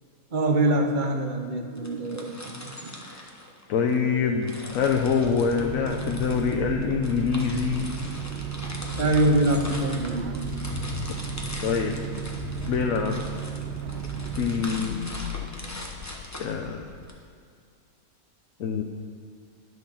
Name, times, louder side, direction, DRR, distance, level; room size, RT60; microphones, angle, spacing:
voice 1, 0.3-3.0 8.9-10.5, right 1 dB, 40° right, 4 dB, 0.8 m, -24 dB
sound 1, 1.8-4.0 4.4-17.1, left 1 dB, 15° left, 0.8 m, -41 dB
voice 2, 3.0-3.3 3.7-7.9 11.1-11.2 11.6-12.0 12.7-13.3 14.4-15.0 16.4-16.9 18.6-18.8, left 6 dB, 70° left, 2 dB, 1.1 m, -25 dB
sound 2, 4.7-17.1, left 7 dB, 90° left, 1.1 m, -39 dB
sound 3, 5.5-14.6, right 9 dB, 75° right, 0.5 m, -34 dB
11.0 x 6.3 x 5.8 m, 2.3 s
omnidirectional pair, 1.5 m